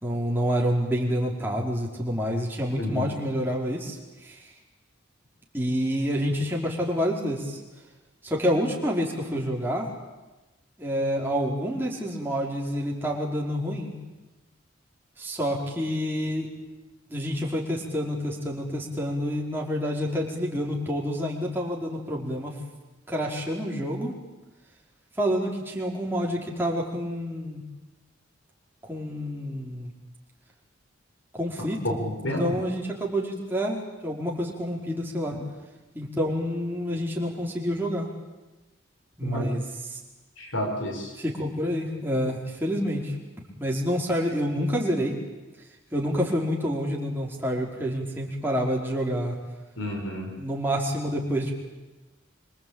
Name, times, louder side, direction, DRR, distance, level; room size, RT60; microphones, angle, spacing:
voice 1, 0.0-4.4 5.5-7.6 8.2-9.9 10.8-14.0 15.2-16.5 17.1-22.6 23.1-24.1 25.2-27.6 28.9-29.9 31.3-35.4 35.9-38.1 39.2-40.0 41.2-43.2 43.6-45.1 45.9-49.3 50.4-51.5, equal, 10° right, -2 dB, 4.8 m, -28 dB
voice 2, 2.8-3.1 31.8-32.6 39.2-39.5 40.4-41.1 49.8-50.3, equal, 80° left, 2 dB, 6.2 m, -30 dB
26.0 x 25.0 x 9.0 m, 1.1 s
head